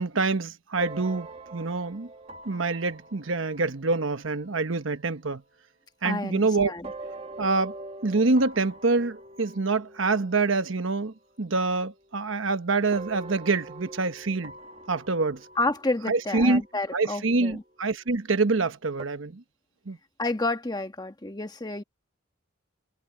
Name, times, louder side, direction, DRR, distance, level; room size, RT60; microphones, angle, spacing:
voice 1, 0.0-2.1 2.4-5.4 6.0-6.7 7.4-7.7 8.0-14.5 14.9-15.5 16.1-16.6 16.9-19.4 19.9-20.0, right 3 dB, 80° right, 1.1 m, -26 dB
sound 1, 0.8-5.5 6.8-11.2 11.5-12.5 12.9-17.8 19.0-19.1, right 2 dB, 30° right, 1.6 m, -45 dB
voice 2, 6.0-6.9 15.6-17.6 20.2-21.8, left 2 dB, 20° left, 1.2 m, -30 dB
head